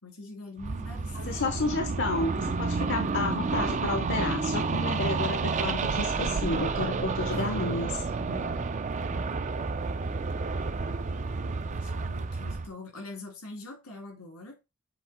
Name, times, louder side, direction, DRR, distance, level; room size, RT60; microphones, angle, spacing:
voice 1, 0.0-1.5 7.3-7.6 8.2-8.7 9.0-9.3 11.7-14.6, left 2 dB, 90° left, 2.8 m, -44 dB
sound 1, 0.6-12.7, right 4 dB, 35° right, 0.4 m, -30 dB
voice 2, 1.1-8.1, left 3 dB, 55° left, 0.7 m, -31 dB
sound 2, 1.5-12.5, right 5 dB, 90° right, 0.5 m, -42 dB
7.5 x 3.4 x 4.3 m
head